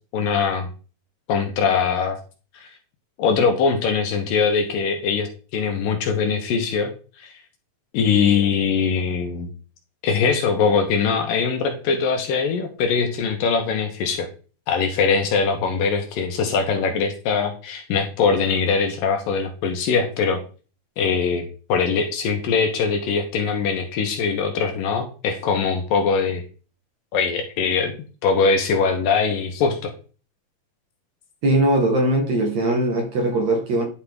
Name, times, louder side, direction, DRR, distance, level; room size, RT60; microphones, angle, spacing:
voice 1, 0.1-0.7 1.3-2.2 2.5-2.7 3.2-6.9 7.2-7.3 7.9-9.5 10.0-14.3 14.7-20.4 21.0-26.4 27.1-27.9 28.2-29.9, left 5 dB, 70° left, 2.6 m, -22 dB
voice 2, 31.4-33.9, right 1 dB, 55° right, 2.3 m, -20 dB
11.5 x 5.6 x 3.6 m
omnidirectional pair, 4.5 m